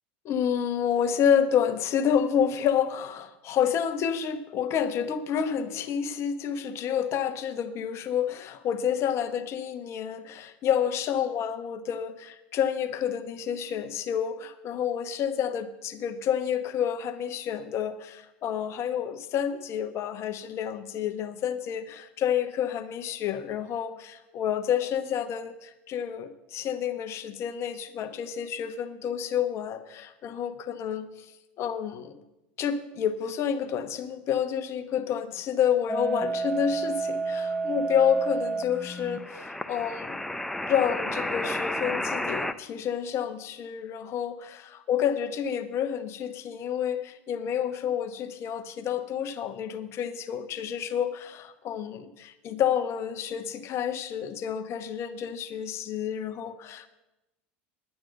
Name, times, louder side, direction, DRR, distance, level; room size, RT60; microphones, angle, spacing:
voice 1, 0.2-31.3 31.6-32.2 32.6-40.2 40.7-44.6 44.9-56.9, left 8 dB, 50° left, 10 dB, 1.1 m, -29 dB
sound 1, 35.9-42.5, right 2 dB, 5° left, 0.6 m, -31 dB
10.5 x 9.4 x 6.6 m, 0.98 s
hypercardioid pair, 95°, 6 cm